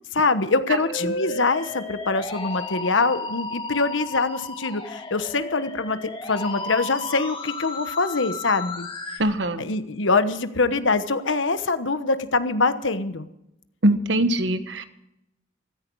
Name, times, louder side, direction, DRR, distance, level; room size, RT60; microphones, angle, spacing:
voice 1, 0.1-6.0 6.3-8.9 9.6-13.3, left 3 dB, 80° left, 11 dB, 1.2 m, -24 dB
Musical instrument, 0.8-9.2, left 3 dB, 25° left, 1.8 m, -33 dB
voice 2, 9.2-9.6 13.8-14.9, right 1 dB, 70° right, 10 dB, 1.3 m, -22 dB
16.0 x 14.5 x 4.7 m, 0.85 s
head